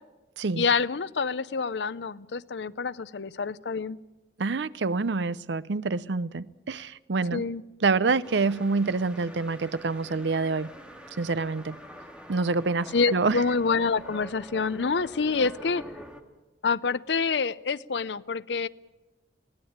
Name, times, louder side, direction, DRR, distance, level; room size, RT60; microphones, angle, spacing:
voice 1, 0.6-4.0 7.3-7.6 12.9-15.8 16.6-18.7, left 4 dB, 80° left, 16 dB, 0.6 m, -27 dB
voice 2, 4.4-7.4 7.8-10.7 11.2-11.8 12.3-13.4, right 4 dB, 85° right, 17 dB, 0.6 m, -27 dB
sound 1, 8.2-16.2, equal, 5° right, 2.0 m, -46 dB
21.5 x 17.5 x 8.7 m, 1.1 s
head